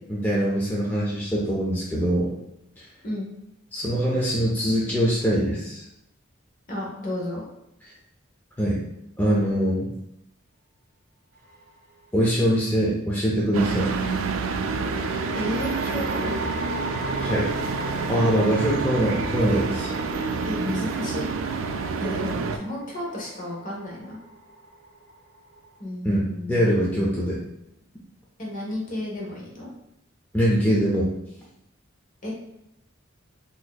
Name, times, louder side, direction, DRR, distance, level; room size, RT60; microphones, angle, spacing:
voice 1, 0.1-2.3 2.8-2.9 3.7-5.8 8.6-8.8 9.2-9.9 12.1-13.9 17.2-17.5 18.1-19.9 26.0-27.4 30.3-31.1, equal, 10° left, -5 dB, 0.4 m, -23 dB
voice 2, 6.7-7.4 15.3-16.3 20.4-21.3 22.0-24.2 25.8-27.0 28.4-29.7 32.2-32.3, left 1 dB, 40° left, -3 dB, 0.9 m, -32 dB
sound 1, 11.4-12.1 14.5-25.8, right 1 dB, 50° right, 1.0 m, -38 dB
sound 2, 13.5-22.6, right 4 dB, 70° right, 0.3 m, -28 dB
4.0 x 2.6 x 2.3 m, 0.83 s
head